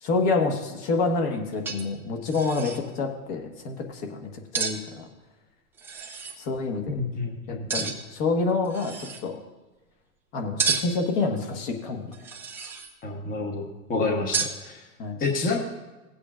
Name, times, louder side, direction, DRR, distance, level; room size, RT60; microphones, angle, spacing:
voice 1, 0.0-5.0 6.4-7.0 7.5-9.4 10.3-12.1 15.0-15.2, left 3 dB, 45° left, 3 dB, 1.5 m, -28 dB
sound 1, 1.2-1.3 1.6-2.0 2.2-2.8 4.5-4.8 5.8-6.4 7.7-8.2 8.6-9.2 10.6-11.1 12.1-12.9 14.3-14.6, right 5 dB, 5° right, 0.3 m, -30 dB
voice 2, 6.9-7.9 13.0-14.9 15.2-15.6, left 3 dB, 20° left, 1 dB, 1.0 m, -29 dB
16.5 x 8.3 x 2.5 m, 1.1 s
hypercardioid pair, 125°, 44 cm